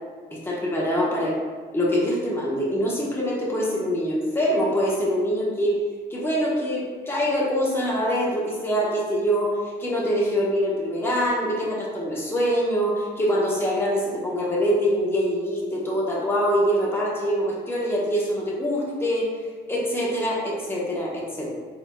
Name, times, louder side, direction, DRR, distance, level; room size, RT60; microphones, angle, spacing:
voice 1, 0.3-1.4 1.7-5.8 6.1-19.3 19.7-21.5, equal, 10° left, -5 dB, 1.1 m, -24 dB
4.5 x 4.3 x 2.3 m, 1.5 s
cardioid pair, 90°, 20 cm